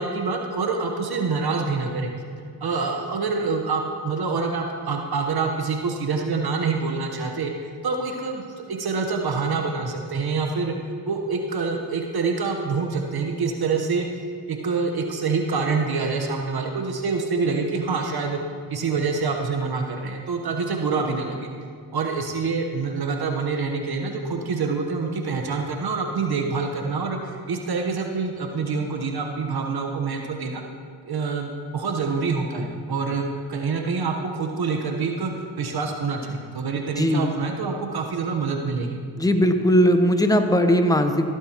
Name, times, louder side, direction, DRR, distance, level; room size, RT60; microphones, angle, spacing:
voice 1, 0.0-2.1 2.6-10.7 11.1-14.1 14.5-18.4 18.7-21.5 21.9-30.6 31.1-39.0, right 4 dB, 50° right, 3 dB, 1.1 m, -26 dB
voice 2, 37.0-37.3 39.2-41.3, equal, 10° left, 7 dB, 0.9 m, -19 dB
15.0 x 8.5 x 3.0 m, 2.1 s
supercardioid pair, 50°, 47 cm